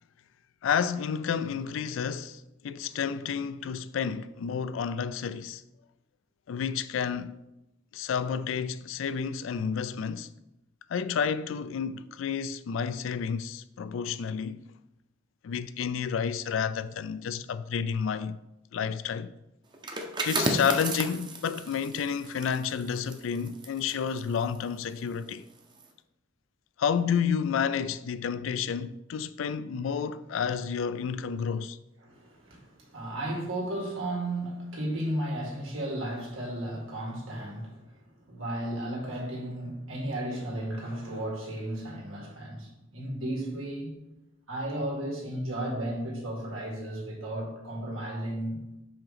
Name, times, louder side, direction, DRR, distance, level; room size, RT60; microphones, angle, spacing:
voice 1, 0.6-5.6 6.5-7.4 7.9-10.3 10.9-14.6 15.4-18.4 18.7-19.3 20.3-25.4 26.8-31.8, left 7 dB, 70° left, 0.3 m, -30 dB
sound 1, 19.7-25.2 25.6-25.9, right 2 dB, 25° right, 0.7 m, -34 dB
voice 2, 32.0-37.8 38.3-44.0 44.5-48.6, right 1 dB, 90° right, 2.0 m, -34 dB
5.1 x 3.8 x 5.8 m
head